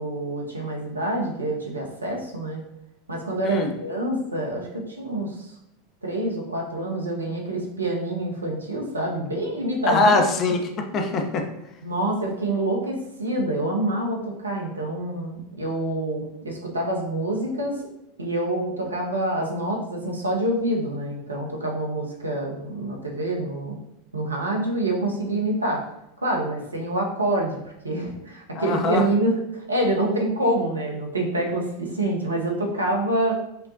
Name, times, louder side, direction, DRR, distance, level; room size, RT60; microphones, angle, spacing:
voice 1, 0.0-2.6 3.1-5.5 6.0-10.2 11.8-17.8 18.2-23.8 24.1-25.8 26.2-27.6 27.8-33.4, right 1 dB, 90° right, -1 dB, 0.9 m, -26 dB
voice 2, 9.9-11.5 28.5-29.1, left 2 dB, 40° left, 4 dB, 0.7 m, -22 dB
5.6 x 2.3 x 2.7 m, 0.85 s
figure-of-eight pair, 85°, 0 cm